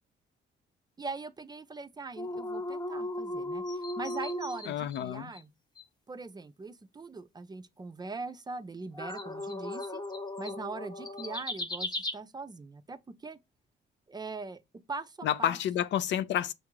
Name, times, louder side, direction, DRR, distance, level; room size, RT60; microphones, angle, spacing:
voice 1, 1.0-5.5 6.1-10.0 10.4-13.4 14.1-14.6 14.9-15.6, right 3 dB, 20° right, 0.4 m, -41 dB
sound 1, 2.2-5.0 5.3-5.4 5.8-5.9 8.9-12.1, left 1 dB, 20° left, 1.0 m, -36 dB
voice 2, 4.7-5.3 15.2-16.5, left 10 dB, 65° left, 0.4 m, -30 dB
6.2 x 2.4 x 3.0 m
cardioid pair, 90°, 20 cm